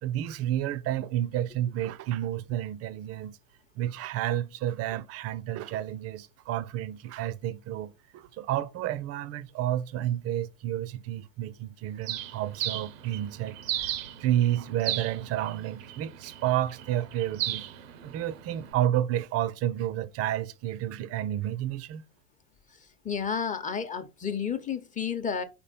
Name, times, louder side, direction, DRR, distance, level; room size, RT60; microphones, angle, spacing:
voice 1, 0.0-3.4 3.8-13.9 14.2-17.7 18.0-22.0, right 12 dB, 40° right, 0.6 m, -30 dB
Bird, 12.0-18.7, right 12 dB, 85° right, 0.8 m, -36 dB
voice 2, 23.0-25.4, left 7 dB, 20° left, 0.9 m, -31 dB
5.0 x 4.4 x 5.1 m
supercardioid pair, 110°, 38 cm